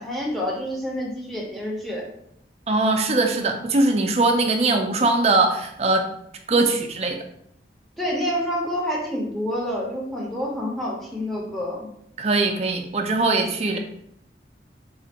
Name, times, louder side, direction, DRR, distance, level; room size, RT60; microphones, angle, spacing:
voice 1, 0.0-2.0 8.0-11.9, equal, ahead, -4 dB, 0.7 m, -28 dB
voice 2, 2.7-6.1 6.5-7.2 12.2-13.8, right 2 dB, 35° right, 4 dB, 0.4 m, -21 dB
4.1 x 2.4 x 2.8 m, 0.72 s
head